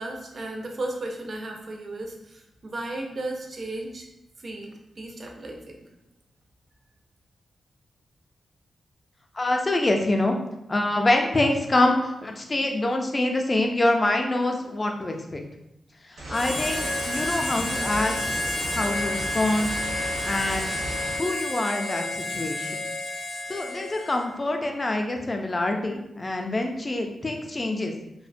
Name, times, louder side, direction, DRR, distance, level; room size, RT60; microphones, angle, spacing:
voice 1, 0.0-4.0 4.4-5.9, right 2 dB, 50° right, 1 dB, 0.4 m, -35 dB
voice 2, 9.4-10.4 10.7-15.4 16.3-18.3 18.7-19.7 20.2-20.8 21.2-22.9 23.5-27.9, left 2 dB, 30° left, 3 dB, 0.3 m, -25 dB
sound 1, 16.2-21.2, equal, 85° right, 1.0 m, -35 dB
Harmonica, 16.3-24.3, left 1 dB, 85° left, 0.5 m, -30 dB
2.5 x 2.1 x 2.5 m, 0.85 s
cardioid pair, 90°, 0 cm